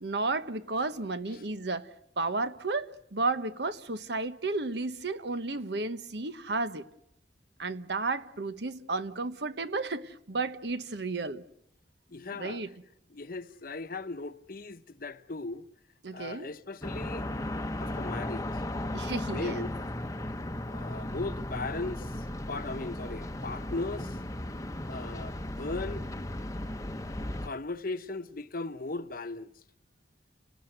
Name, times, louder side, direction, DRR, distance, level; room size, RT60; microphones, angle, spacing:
voice 1, 0.0-1.9 2.2-6.8 7.6-11.4 12.3-12.7 16.0-16.5 18.9-19.6, right 3 dB, 70° right, 1.2 m, -33 dB
voice 2, 12.1-12.6 13.1-15.7 16.1-17.3 17.8-18.5 19.3-19.7 20.6-24.2 24.9-26.0 27.4-29.5, left 3 dB, 55° left, 1.0 m, -38 dB
sound 1, 16.8-27.5, left 1 dB, 20° left, 0.9 m, -36 dB
29.5 x 18.5 x 8.0 m
head